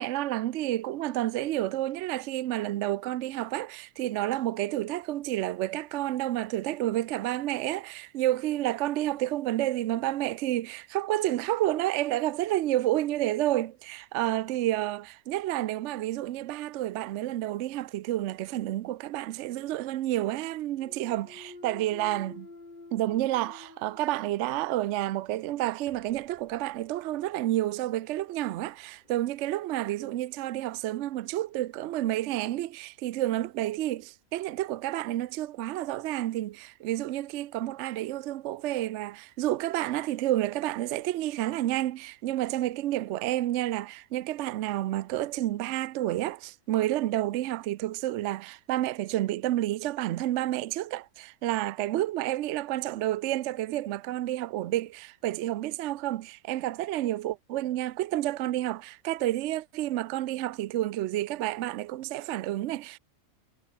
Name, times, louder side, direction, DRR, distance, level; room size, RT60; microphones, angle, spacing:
voice 1, 0.0-22.5 22.9-63.0, right 14 dB, 65° right, 0.7 m, -30 dB
Thump thud, 20.7-24.7 25.2-29.9, left 3 dB, 30° left, 2.7 m, -52 dB
omnidirectional pair, 1.6 m